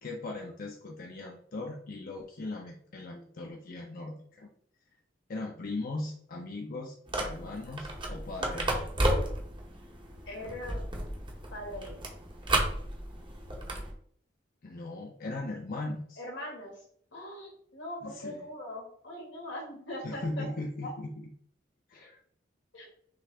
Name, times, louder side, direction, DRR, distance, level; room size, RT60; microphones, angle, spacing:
voice 1, 0.0-4.5 5.3-8.9 14.6-16.2 18.0-18.4 20.0-21.1 21.9-22.2, left 2 dB, 50° left, 0 dB, 0.6 m, -39 dB
sound 1, 7.1-13.9, right 1 dB, 25° right, 0.8 m, -33 dB
voice 2, 10.3-10.9 11.5-11.9 16.2-16.8 17.1-20.5 20.8-20.9 22.7-22.9, left 1 dB, 80° left, -1 dB, 1.7 m, -41 dB
6.1 x 2.5 x 3.3 m, 0.63 s
head